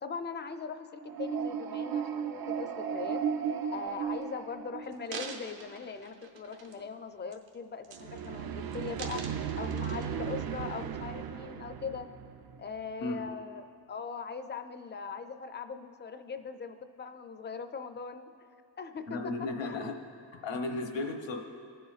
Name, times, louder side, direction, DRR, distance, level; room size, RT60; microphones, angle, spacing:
voice 1, 0.0-2.2 2.6-3.2 3.7-9.2 9.6-12.1 12.6-18.3 18.8-19.2 19.6-19.9, left 5 dB, 25° left, 8 dB, 0.4 m, -40 dB
sound 1, 1.0-5.3 7.9-12.9, right 7 dB, 55° right, 0.5 m, -36 dB
sound 2, 3.9-4.2 4.8-6.9 7.3-7.5 7.8-8.4 8.7-10.4 11.0-11.1, right 5 dB, 70° right, 1.0 m, -45 dB
voice 2, 19.1-19.9 20.4-21.4, left 3 dB, 80° left, 3 dB, 1.0 m, -34 dB
19.0 x 6.9 x 2.4 m, 2.4 s
wide cardioid pair, 120°, 45 cm